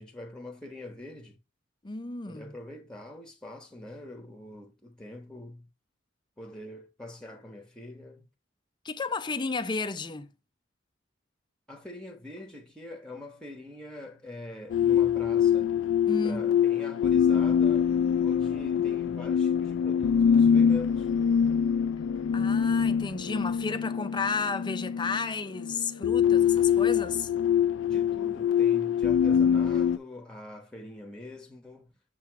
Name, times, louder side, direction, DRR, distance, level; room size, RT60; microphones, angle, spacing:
voice 1, 0.0-1.4 2.3-5.7 6.4-8.3 11.7-15.8 16.2-17.9 18.2-21.1 27.9-32.0, left 1 dB, 5° left, 1.0 m, -44 dB
voice 2, 1.8-2.5 8.8-10.3 16.1-16.5 22.3-27.3, left 4 dB, 25° left, 0.5 m, -32 dB
sound 1, 14.7-30.0, left 8 dB, 80° left, 0.3 m, -24 dB
6.9 x 3.0 x 4.6 m
head